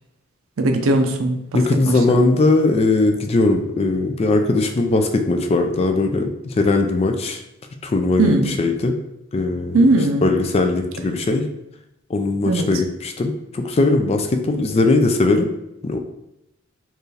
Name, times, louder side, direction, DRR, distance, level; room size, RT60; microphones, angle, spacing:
voice 1, 0.6-1.6 1.8-2.3 8.2-8.6 9.7-10.2 12.5-12.7, right 2 dB, 70° right, 5 dB, 0.5 m, -18 dB
voice 2, 1.5-7.4 7.8-8.9 9.3-9.8 10.2-11.4 12.1-15.5 15.8-16.0, left 2 dB, 30° left, 5 dB, 0.3 m, -19 dB
4.5 x 2.5 x 3.2 m, 0.86 s
head